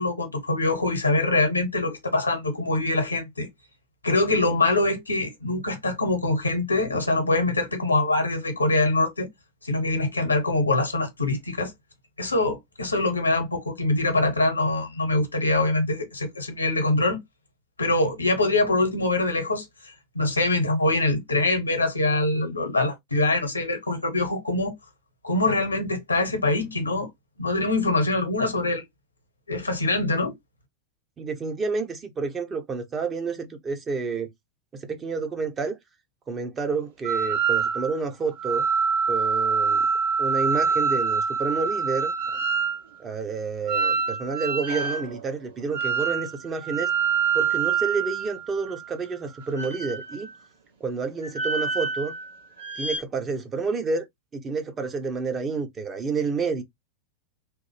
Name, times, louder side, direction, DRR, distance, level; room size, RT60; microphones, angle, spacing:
voice 1, 0.0-3.5 4.0-9.3 9.6-11.7 12.2-17.2 17.8-24.7 25.2-27.1 27.4-28.8 29.5-30.3, left 2 dB, 80° left, 0.9 m, -24 dB
voice 2, 31.2-34.3 34.7-35.8 36.3-38.7 39.1-39.9 40.2-42.4 43.0-46.9 47.3-50.3 50.8-52.1 52.8-54.0 54.3-56.6, right 4 dB, 20° right, 0.6 m, -29 dB
sound 1, 37.0-38.0 38.4-42.8 43.7-45.1 45.7-46.3 46.6-48.9 49.5-50.3 51.2-52.2 52.6-53.0, right 5 dB, 65° right, 1.3 m, -25 dB
3.0 x 2.0 x 3.2 m
figure-of-eight pair, 90°, 0 cm